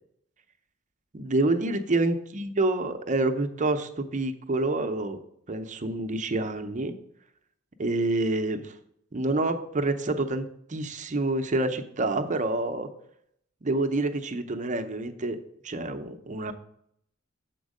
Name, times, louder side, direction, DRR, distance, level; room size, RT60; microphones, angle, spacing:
voice 1, 1.1-5.2 5.5-6.9 7.8-8.7 9.1-12.9 13.6-15.4 15.6-16.5, right 2 dB, 35° right, 7 dB, 0.6 m, -27 dB
7.2 x 4.5 x 6.3 m, 0.71 s
head